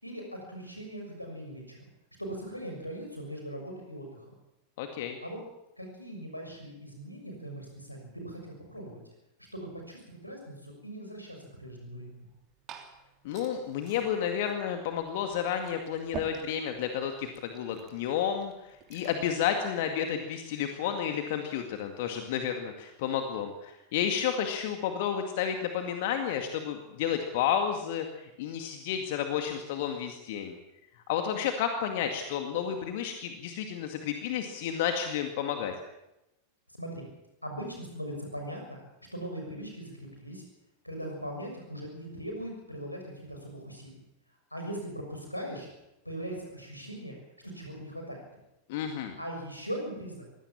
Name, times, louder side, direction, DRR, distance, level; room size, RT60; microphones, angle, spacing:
voice 1, 0.0-1.8 2.2-4.2 5.2-5.4 5.8-9.0 9.5-12.1 36.8-37.1 37.4-38.8 39.1-40.5 40.8-44.0 44.5-45.7 46.0-47.2 47.5-48.2 49.2-50.3, equal, 90° left, 2 dB, 6.5 m, -40 dB
voice 2, 4.8-5.2 13.2-18.5 18.9-30.6 31.1-35.7 48.7-49.1, left 8 dB, 50° left, 5 dB, 2.0 m, -31 dB
Liquid, 12.2-19.3, right 9 dB, 35° right, 3.2 m, -49 dB
22.5 x 17.0 x 7.3 m, 0.92 s
figure-of-eight pair, 90°, 0 cm